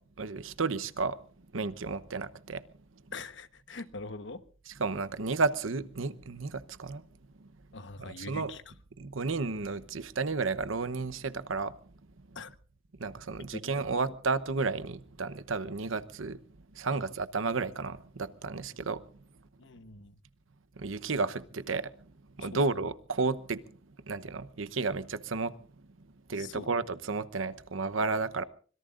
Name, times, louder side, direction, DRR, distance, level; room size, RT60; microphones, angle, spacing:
voice 1, 0.2-1.2 1.5-2.6 4.7-7.0 7.4-7.5 8.0-8.5 9.0-11.7 13.0-16.4 16.7-19.0 20.8-21.9 22.4-23.7 24.1-25.5 26.3-28.4, right 4 dB, 80° right, 0.9 m, -32 dB
voice 2, 3.1-4.4 7.7-8.6 12.3-12.5 13.5-13.8 16.9-17.0 19.6-20.1 22.4-22.6 26.4-26.7, left 3 dB, 65° left, 1.2 m, -43 dB
25.5 x 21.5 x 2.5 m
head